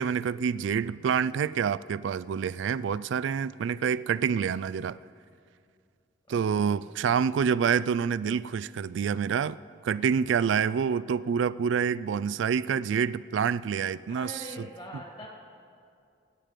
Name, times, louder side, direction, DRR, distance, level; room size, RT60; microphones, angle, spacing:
voice 1, 0.0-5.0 6.3-9.6 9.8-14.6, right 7 dB, 75° right, 18 dB, 0.3 m, -27 dB
voice 2, 6.3-6.8 14.1-15.3, equal, 25° left, -1 dB, 2.0 m, -43 dB
25.0 x 9.0 x 5.1 m, 2.4 s
head